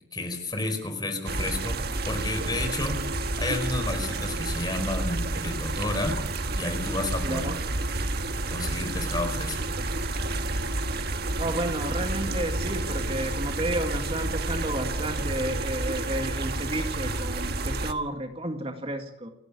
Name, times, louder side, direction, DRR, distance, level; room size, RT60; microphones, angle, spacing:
voice 1, 0.1-1.8 2.1-3.0 3.4-6.2 6.5-7.6 8.5-9.6, left 2 dB, 25° left, 6 dB, 4.6 m, -31 dB
sound 1, 1.3-17.9, right 2 dB, 60° right, 1.6 m, -30 dB
voice 2, 7.2-7.5 11.4-19.3, right 1 dB, 35° right, 5 dB, 2.1 m, -31 dB
29.5 x 12.0 x 8.6 m, 0.77 s
head